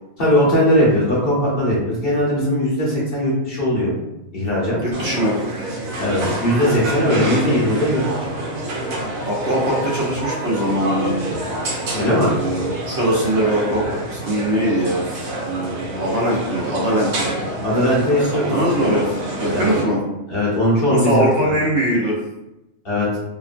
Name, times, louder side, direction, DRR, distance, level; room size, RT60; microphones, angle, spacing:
voice 1, 0.2-3.9 4.3-4.8 6.0-8.3 11.9-12.3 17.6-18.5 19.5-19.7 20.3-21.5 22.8-23.2, equal, 50° left, -6 dB, 0.9 m, -19 dB
voice 2, 4.8-5.4 7.1-7.2 9.3-11.1 12.3-15.1 15.4-17.3 18.2-19.1 19.4-20.0 20.8-22.2, right 1 dB, 60° right, -4 dB, 1.0 m, -21 dB
sound 1, 4.9-19.9, right 1 dB, 80° right, 1.1 m, -27 dB
2.9 x 2.2 x 2.4 m, 0.92 s
omnidirectional pair, 1.4 m